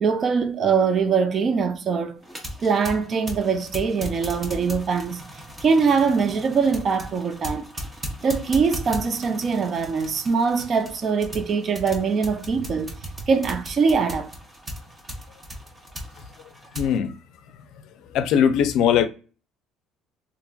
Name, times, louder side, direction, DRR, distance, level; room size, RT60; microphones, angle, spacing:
voice 1, 0.0-2.2 2.6-5.2 5.6-7.7 8.2-13.0 13.3-14.3, right 5 dB, 40° right, 0.4 m, -22 dB
sound 1, 2.2-17.0, equal, 20° right, 0.8 m, -37 dB
voice 2, 16.8-17.1 18.1-19.1, left 8 dB, 70° left, 0.4 m, -19 dB
3.1 x 2.4 x 2.3 m
cardioid pair, 130°, 0 cm